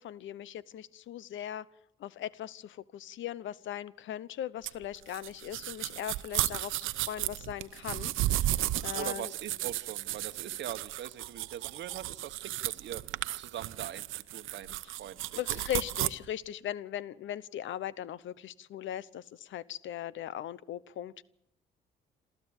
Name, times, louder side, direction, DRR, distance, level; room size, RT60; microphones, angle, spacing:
voice 1, 0.0-1.7 2.0-9.3 14.6-14.8 15.3-21.2, left 11 dB, 75° left, 20 dB, 0.9 m, -39 dB
sound 1, 4.6-16.1, right 15 dB, 90° right, 0.8 m, -34 dB
voice 2, 8.9-15.2 15.5-15.6, right 10 dB, 65° right, 8 dB, 1.2 m, -42 dB
27.5 x 14.0 x 9.0 m, 0.74 s
cardioid pair, 90°, 20 cm